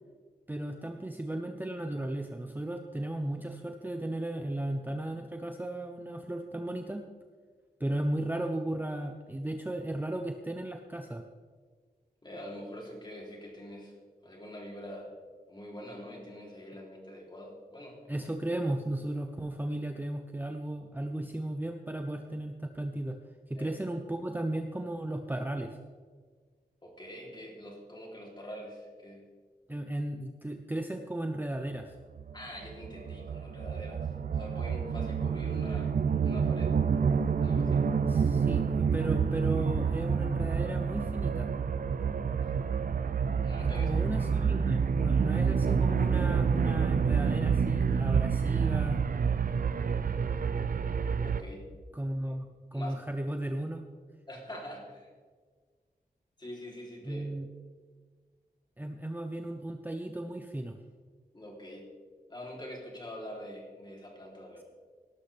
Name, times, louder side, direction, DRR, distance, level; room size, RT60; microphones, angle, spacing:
voice 1, 0.5-7.0 7.8-11.2 18.1-23.2 23.5-25.8 29.7-31.9 38.1-41.5 43.6-49.1 51.9-52.5 52.7-53.8 57.0-57.5 58.8-60.8, right 1 dB, 10° right, 5 dB, 0.7 m, -35 dB
voice 2, 12.2-13.9 14.2-15.1 15.5-18.3 23.6-23.7 26.8-29.2 32.3-36.7 37.4-37.9 42.3-42.6 43.4-44.3 51.2-51.6 52.7-53.0 54.3-55.1 56.4-57.3 61.3-61.9 62.3-64.6, equal, 30° left, -2 dB, 3.3 m, -44 dB
sound 1, 32.2-51.4, right 6 dB, 60° right, 0.6 m, -28 dB
17.5 x 12.5 x 3.4 m, 1.5 s
wide cardioid pair, 120°, 16 cm